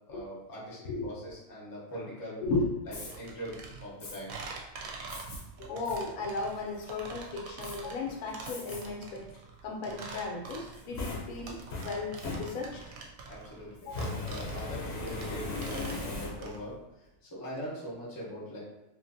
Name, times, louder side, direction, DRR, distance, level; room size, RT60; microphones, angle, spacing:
voice 1, 0.1-2.4 2.9-4.4 13.2-16.7 17.2-18.6, equal, 20° left, -5 dB, 0.5 m, -42 dB
Fire, 2.8-3.1 4.0-4.2 5.1-5.4 5.8-6.0 6.5-6.9 7.6-7.8 8.4-8.8 9.3-9.4 10.5-12.9 13.8-16.7, left 2 dB, 55° left, 0.8 m, -38 dB
sound 1, 3.1-16.6, right 4 dB, 70° right, 1.0 m, -45 dB
voice 2, 5.6-9.3 9.6-12.8 13.8-14.2, left 3 dB, 75° left, 0 dB, 1.0 m, -35 dB
2.8 x 2.5 x 2.6 m, 0.98 s
omnidirectional pair, 1.6 m